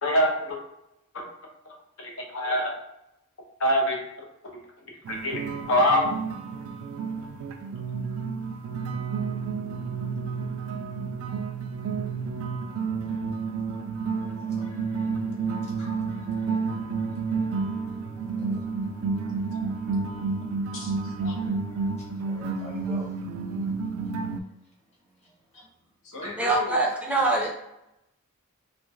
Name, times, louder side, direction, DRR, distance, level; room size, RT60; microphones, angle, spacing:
voice 1, 0.0-0.6 1.1-1.2 1.6-2.8 3.6-4.6 5.1-6.1 19.5-19.6 20.7-21.5 26.0-26.8, equal, 65° left, 0 dB, 0.7 m, -27 dB
sound 1, 5.0-24.4, right 4 dB, 75° right, 0.3 m, -30 dB
voice 2, 14.1-17.6 17.9-18.0 18.4-18.6 20.6-20.9 21.7-21.9 22.3-23.1 25.2-25.7 26.2-26.3, equal, 30° left, -4 dB, 1.0 m, -48 dB
voice 3, 26.4-27.5, right 2 dB, 5° right, -2 dB, 0.5 m, -24 dB
3.1 x 2.9 x 2.2 m, 0.85 s
head